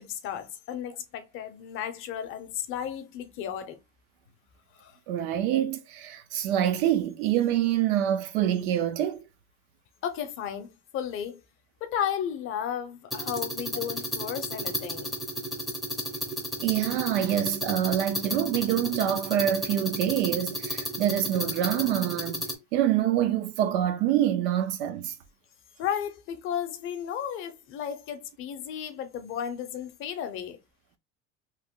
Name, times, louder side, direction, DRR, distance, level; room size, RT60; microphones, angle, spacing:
voice 1, 0.0-3.8 4.7-5.0 10.0-11.4 11.8-15.2 25.8-30.6, left 9 dB, 40° left, 0.6 m, -34 dB
voice 2, 5.1-9.2 16.6-22.4 22.7-25.1, right 11 dB, 70° right, 0.7 m, -26 dB
sound 1, 13.1-22.5, equal, ahead, 0.6 m, -33 dB
3.0 x 2.1 x 3.6 m
supercardioid pair, 140°, 33 cm